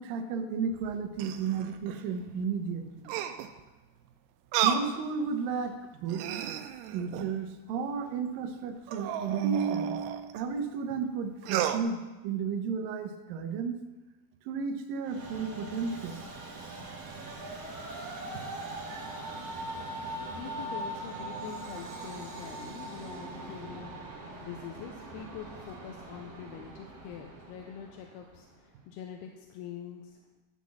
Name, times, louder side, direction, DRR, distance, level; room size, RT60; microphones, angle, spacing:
voice 1, 0.0-3.1 4.6-6.5 6.9-13.8 14.5-16.2, right 6 dB, 75° right, 5 dB, 2.2 m, -33 dB
sound 1, 0.7-2.1 3.1-3.6 4.5-4.9 5.5-5.6 6.0-7.4 8.9-10.4 11.4-11.8, right 10 dB, 90° right, 2.7 m, -33 dB
Train, 15.0-28.5, right 2 dB, 55° right, 1.9 m, -41 dB
voice 2, 20.3-30.2, left 8 dB, 85° left, 3 dB, 2.6 m, -44 dB
12.0 x 4.1 x 7.2 m, 1.1 s
omnidirectional pair, 4.6 m